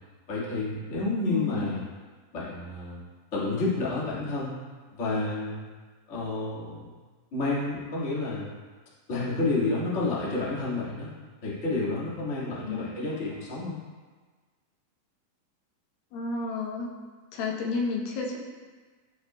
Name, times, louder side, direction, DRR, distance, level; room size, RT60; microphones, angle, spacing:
voice 1, 0.3-1.8 2.3-3.0 3.3-4.5 5.0-5.6 6.1-6.9 7.3-8.5 9.1-11.1 11.4-13.7, left 2 dB, 35° left, -7 dB, 1.1 m, -30 dB
voice 2, 1.3-1.7 12.6-12.9 16.1-16.9 17.3-18.4, left 4 dB, 85° left, 0 dB, 2.7 m, -31 dB
13.5 x 5.7 x 2.2 m, 1.4 s
omnidirectional pair, 4.1 m